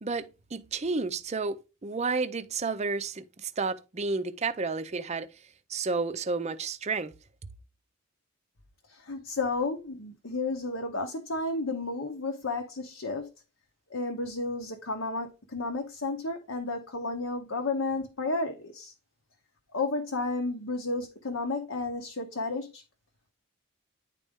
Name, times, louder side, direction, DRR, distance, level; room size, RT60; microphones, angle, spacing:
voice 1, 0.0-5.3 5.7-7.1, right 4 dB, 30° right, 0.5 m, -31 dB
voice 2, 8.9-13.3 13.9-18.9 19.7-22.8, left 3 dB, 65° left, 0.9 m, -32 dB
9.8 x 4.1 x 3.6 m
head